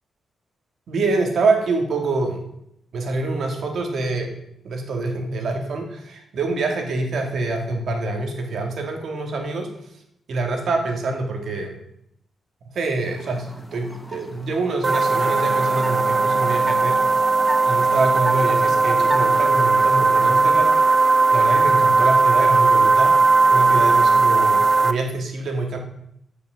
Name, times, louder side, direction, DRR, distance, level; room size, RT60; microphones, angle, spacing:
voice 1, 0.9-2.4 2.9-4.3 4.6-9.7 10.3-11.8 12.7-17.0 17.6-20.7 21.3-23.2 23.5-25.8, right 3 dB, 55° right, 3 dB, 2.4 m, -25 dB
sound 1, 13.0-19.7, left 1 dB, ahead, 1.1 m, -36 dB
sound 2, 14.8-24.9, right 3 dB, 25° right, 0.6 m, -17 dB
14.0 x 6.6 x 6.5 m, 0.75 s
wide cardioid pair, 165°, 0 cm